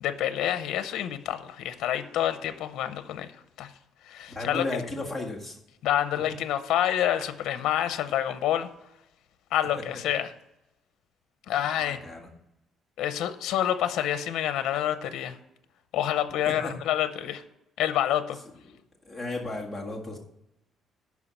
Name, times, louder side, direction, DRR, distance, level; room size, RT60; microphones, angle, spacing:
voice 1, 0.0-3.7 4.0-4.6 5.8-8.7 9.5-10.3 11.5-12.0 13.0-15.4 15.9-17.4 17.8-18.4, left 11 dB, 75° left, 11 dB, 0.7 m, -28 dB
voice 2, 4.3-5.6 11.5-12.3 16.5-16.7 18.7-18.8 19.0-20.2, left 2 dB, 5° right, 0 dB, 1.8 m, -34 dB
11.5 x 4.6 x 7.0 m, 0.85 s
cardioid pair, 165°, 0 cm